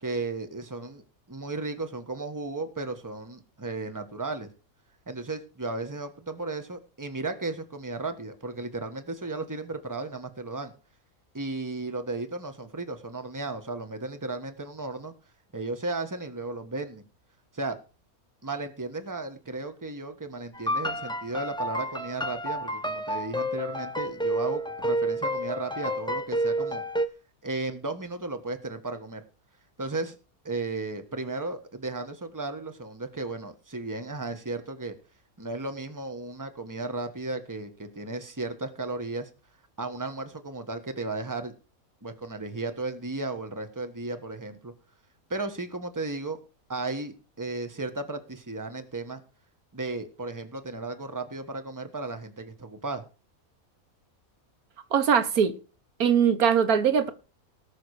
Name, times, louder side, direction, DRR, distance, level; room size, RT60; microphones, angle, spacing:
voice 1, 0.0-4.5 5.1-10.7 11.3-15.1 15.5-17.1 17.5-17.8 18.4-26.8 27.4-29.2 29.8-30.2 30.4-34.9 35.4-39.3 39.8-41.5 42.0-44.7 45.3-46.4 46.7-49.2 49.7-53.0, right 2 dB, 15° right, 1.4 m, -35 dB
sound 1, 20.5-27.1, right 1 dB, 5° left, 0.5 m, -30 dB
voice 2, 54.9-55.5 56.0-57.1, right 7 dB, 85° right, 1.6 m, -21 dB
18.5 x 6.6 x 4.9 m
omnidirectional pair, 1.5 m